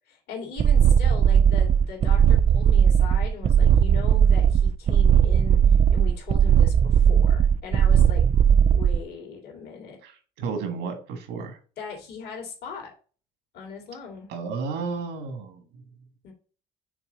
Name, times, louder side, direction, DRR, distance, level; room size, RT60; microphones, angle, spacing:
voice 1, 0.1-5.6 5.9-8.2 8.7-10.0 11.8-12.9 13.5-14.3 16.2-16.3, left 5 dB, 70° left, 0 dB, 2.4 m, -39 dB
sound 1, 0.6-9.0, right 8 dB, 35° right, 0.4 m, -18 dB
voice 2, 10.0-11.6 14.3-15.8, right 5 dB, 90° right, 6 dB, 1.6 m, -33 dB
6.0 x 3.6 x 5.0 m, 0.39 s
cardioid pair, 110°, 17 cm